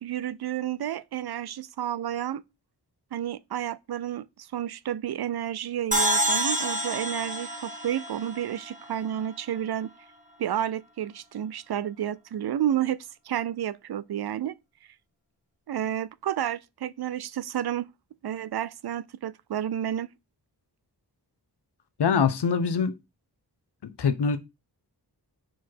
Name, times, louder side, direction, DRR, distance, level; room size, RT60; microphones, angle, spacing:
voice 1, 0.0-2.4 3.1-9.9 10.4-14.5 15.7-17.9 18.2-20.1, right 10 dB, 70° right, 0.5 m, -31 dB
sound 1, 5.9-9.2, right 1 dB, 20° right, 1.1 m, -28 dB
voice 2, 22.0-22.9 23.8-24.4, left 6 dB, 85° left, 0.9 m, -24 dB
4.9 x 4.6 x 4.4 m
wide cardioid pair, 115°, 40 cm